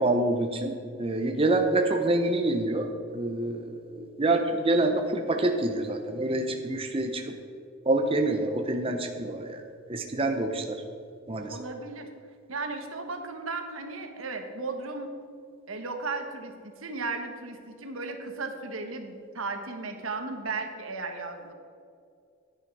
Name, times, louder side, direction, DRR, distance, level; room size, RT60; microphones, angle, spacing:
voice 1, 0.0-2.9 3.1-7.2 7.8-9.6 9.9-10.8 11.3-11.6, right 2 dB, 25° right, 4 dB, 0.7 m, -26 dB
voice 2, 11.4-12.0 12.5-15.1 15.7-21.5, right 3 dB, 80° right, 5 dB, 1.3 m, -35 dB
10.0 x 10.0 x 4.7 m, 2.3 s
head